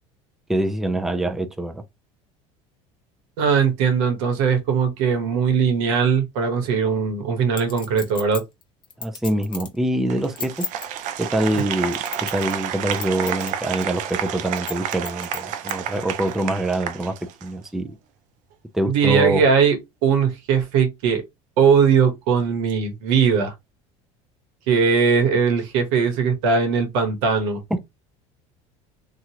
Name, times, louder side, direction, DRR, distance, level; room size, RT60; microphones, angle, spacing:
voice 1, 0.5-1.8 9.0-10.7 11.2-17.1 17.4-18.0 18.7-19.4 27.7-27.8, right 1 dB, ahead, 0.4 m, -24 dB
voice 2, 3.4-8.4 18.9-21.2 21.6-23.5 24.7-27.6, right 6 dB, 85° right, 1.1 m, -20 dB
Chink clink, 7.6-9.8 10.2-10.9 11.5-12.6 12.9-13.5 13.8-13.9 14.6-15.8 16.3-16.4, left 5 dB, 30° left, 1.1 m, -33 dB
Applause, 10.1-17.7, right 9 dB, 55° right, 0.5 m, -30 dB
3.0 x 2.4 x 2.8 m
supercardioid pair, 120°, 15 cm